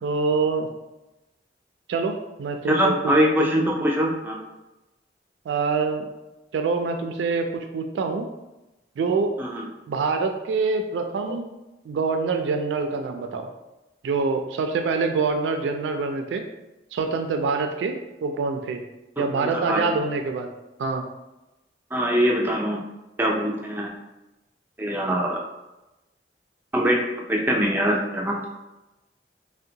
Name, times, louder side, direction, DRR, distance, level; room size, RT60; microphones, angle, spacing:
voice 1, 0.0-0.7 1.9-3.0 5.5-6.1 6.5-8.3 9.0-9.4 9.9-11.5 11.9-13.5 14.0-16.4 16.9-18.8 19.2-20.5 20.8-21.0, right 4 dB, 90° right, 5 dB, 0.3 m, -25 dB
voice 2, 2.7-4.4 9.4-9.7 19.4-19.9 21.9-22.8 23.2-23.9 24.8-25.4 26.7-27.0 27.3-28.4, equal, 10° right, -1 dB, 0.4 m, -22 dB
3.6 x 2.1 x 2.7 m, 0.99 s
head